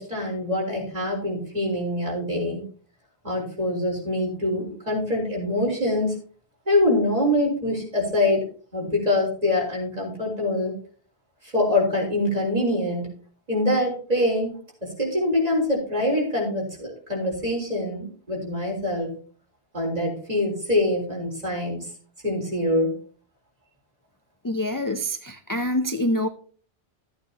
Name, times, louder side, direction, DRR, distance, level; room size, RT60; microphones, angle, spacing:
voice 1, 0.0-2.6 3.2-6.1 6.7-10.8 11.5-13.1 13.5-14.5 14.8-19.1 19.7-21.9 22.2-22.9, left 1 dB, 35° right, -2 dB, 4.5 m, -24 dB
voice 2, 24.4-26.3, left 1 dB, 25° left, 8 dB, 0.5 m, -26 dB
14.0 x 8.9 x 2.9 m, 0.42 s
omnidirectional pair, 1.1 m